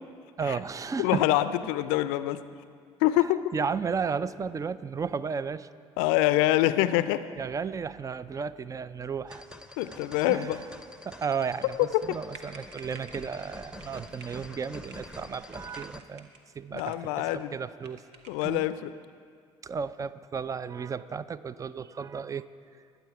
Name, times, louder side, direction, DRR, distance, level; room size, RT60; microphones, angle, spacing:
voice 1, 0.4-1.3 3.5-5.7 7.4-9.4 9.8-10.0 10.3-10.5 11.0-16.3 16.5-18.0 18.4-18.6 19.6-22.5, right 6 dB, 20° right, 16 dB, 0.5 m, -33 dB
voice 2, 1.0-2.4 3.0-3.5 6.0-7.2 9.8-10.6 11.9-12.2 16.7-17.5 18.3-18.9, left 15 dB, 65° left, 14 dB, 0.5 m, -25 dB
sound 1, 9.3-16.0, left 1 dB, 5° right, 0.9 m, -46 dB
sound 2, 12.3-13.4 13.8-14.4 14.7-15.1 15.5-16.4 16.7-17.5 17.8-18.6, right 4 dB, 70° right, 1.0 m, -51 dB
21.0 x 8.1 x 4.7 m, 2.2 s
figure-of-eight pair, 55°, 15 cm